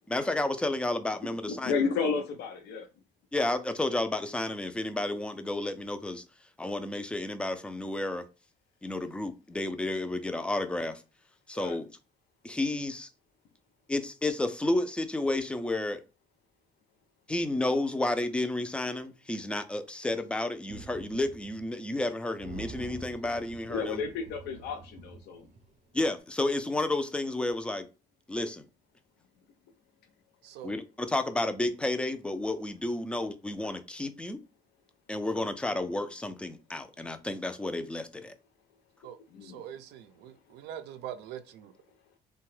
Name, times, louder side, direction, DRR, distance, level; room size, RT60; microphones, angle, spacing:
voice 1, 0.1-1.7 3.3-6.2 6.6-8.3 8.8-11.0 11.5-11.9 12.4-13.1 13.9-16.0 17.3-24.0 25.9-27.9 28.3-28.6 30.6-34.4 35.1-38.4, left 2 dB, 5° left, 0.3 m, -31 dB
voice 2, 1.5-2.9 11.5-11.8 23.7-25.5 39.3-39.6, left 5 dB, 75° left, 0.4 m, -32 dB
sound 1, 20.7-21.7 22.0-22.1 22.4-25.8, right 3 dB, 45° right, 0.7 m, -46 dB
voice 3, 30.4-30.7 39.0-41.7, right 10 dB, 85° right, 0.4 m, -43 dB
2.7 x 2.2 x 3.1 m
cardioid pair, 110°, 17 cm